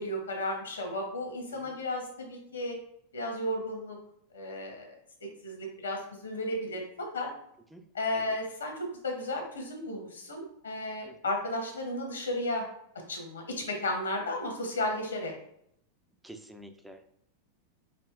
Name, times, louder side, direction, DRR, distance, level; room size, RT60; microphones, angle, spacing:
voice 1, 0.0-2.8 3.1-4.0 4.3-4.9 5.4-5.6 5.8-7.3 7.9-12.7 13.1-15.3, left 1 dB, 75° left, 2 dB, 1.0 m, -34 dB
voice 2, 16.2-17.1, right 1 dB, 5° right, 6 dB, 0.4 m, -49 dB
4.9 x 2.6 x 2.4 m, 0.72 s
figure-of-eight pair, 90°, 0 cm